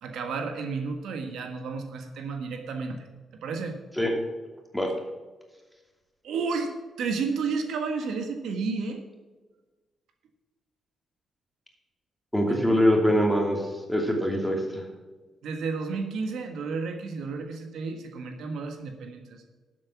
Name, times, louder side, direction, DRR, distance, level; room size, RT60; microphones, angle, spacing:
voice 1, 0.0-3.0 3.4-3.8 6.2-9.0 12.5-12.7 15.4-19.4, right 4 dB, 85° right, 5 dB, 1.6 m, -32 dB
voice 2, 12.3-14.8, equal, ahead, 1 dB, 2.6 m, -23 dB
12.0 x 7.7 x 6.1 m, 1.3 s
cardioid pair, 115°, 0 cm